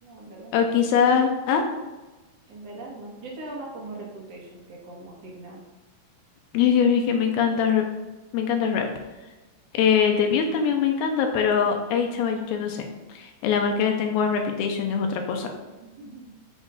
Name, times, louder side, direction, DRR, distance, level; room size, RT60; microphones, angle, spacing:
voice 1, 0.0-0.7 2.5-5.6 15.8-16.3, right 2 dB, 55° right, -4 dB, 2.2 m, -40 dB
voice 2, 0.5-1.6 6.5-7.8 8.3-8.9 9.7-15.5, left 7 dB, 85° left, 4 dB, 2.4 m, -22 dB
9.3 x 7.1 x 2.4 m, 1.1 s
omnidirectional pair, 4.3 m